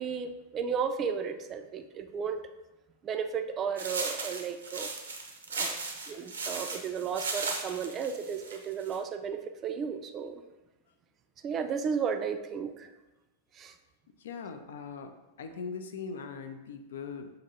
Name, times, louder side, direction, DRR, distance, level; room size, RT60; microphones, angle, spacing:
voice 1, 0.0-2.4 3.0-4.9 5.5-5.8 6.1-10.4 11.4-12.9 13.6-13.7, right 6 dB, 30° right, 7 dB, 0.4 m, -34 dB
sound 1, 3.8-9.0, right 3 dB, 70° right, 0.6 m, -36 dB
voice 2, 14.2-17.3, left 5 dB, 60° left, 6 dB, 0.3 m, -40 dB
6.6 x 2.6 x 2.8 m, 1.0 s
figure-of-eight pair, 90°, 0 cm